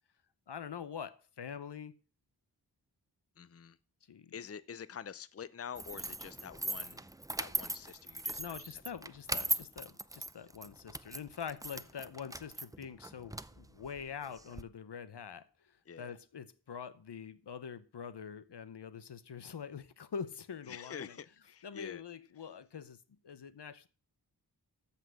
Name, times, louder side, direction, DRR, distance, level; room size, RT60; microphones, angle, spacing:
voice 1, 0.5-2.0 4.1-4.3 8.4-15.7 16.0-21.2 21.6-23.0 23.2-23.9, left 7 dB, 80° left, 0.9 m, -45 dB
voice 2, 3.4-3.8 4.3-7.0 7.4-8.5 15.9-16.2 20.7-22.0, left 7 dB, 35° left, 0.6 m, -47 dB
sound 1, 5.7-14.6, right 1 dB, 10° right, 0.5 m, -40 dB
14.0 x 5.8 x 6.4 m
wide cardioid pair, 70°, 40 cm